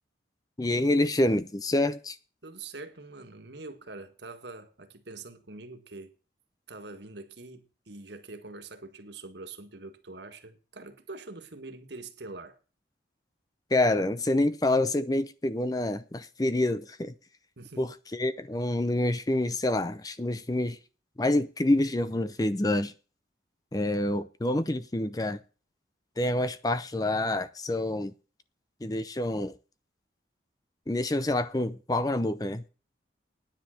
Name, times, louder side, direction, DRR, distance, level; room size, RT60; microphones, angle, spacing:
voice 1, 0.6-2.2 13.7-17.1 17.8-20.8 21.2-22.9 23.7-25.4 26.2-28.1 28.8-29.6 30.9-32.7, left 1 dB, 20° left, 0.5 m, -27 dB
voice 2, 2.4-6.1 6.7-12.6 17.6-17.8, right 3 dB, 70° right, 1.7 m, -44 dB
10.0 x 9.8 x 6.5 m
head